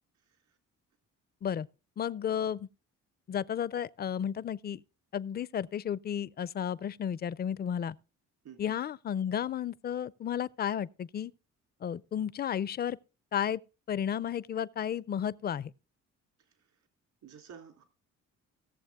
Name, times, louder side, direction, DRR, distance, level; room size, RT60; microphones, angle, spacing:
voice 1, 0.2-0.6 8.4-8.8 16.4-16.9 17.2-17.8, right 7 dB, 75° right, 3.4 m, -53 dB
voice 2, 2.0-2.7 3.3-4.8 5.1-8.0 8.6-11.3 11.8-13.0 13.3-13.6 13.9-15.7, left 9 dB, 35° left, 0.4 m, -33 dB
17.5 x 7.1 x 3.6 m
cardioid pair, 90°, 30 cm